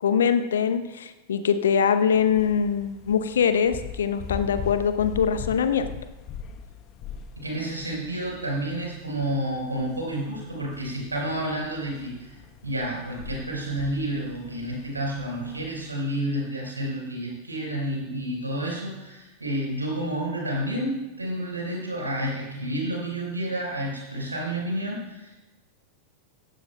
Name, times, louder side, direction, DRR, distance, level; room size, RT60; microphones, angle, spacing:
voice 1, 0.0-5.9, left 7 dB, 65° left, 11 dB, 0.8 m, -23 dB
sound 1, 2.1-15.8, left 7 dB, 40° left, 1.0 m, -41 dB
voice 2, 7.4-12.4 12.6-25.4, right 1 dB, 80° right, -2 dB, 4.3 m, -30 dB
16.5 x 15.0 x 2.2 m, 1.1 s
figure-of-eight pair, 90°, 0 cm